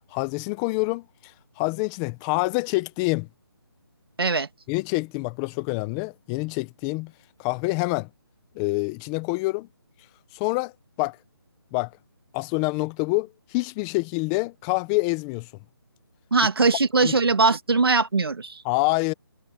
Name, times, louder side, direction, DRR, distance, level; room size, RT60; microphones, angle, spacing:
voice 1, 0.1-3.3 4.7-7.1 7.4-8.1 8.6-9.7 10.3-10.7 11.0-11.2 11.7-11.9 12.3-15.5 17.0-17.1 18.6-19.1, left 24 dB, 10° left, 0.6 m, -26 dB
voice 2, 16.3-18.6, right 3 dB, 75° right, 2.4 m, -21 dB
hypercardioid pair, 165°, 13 cm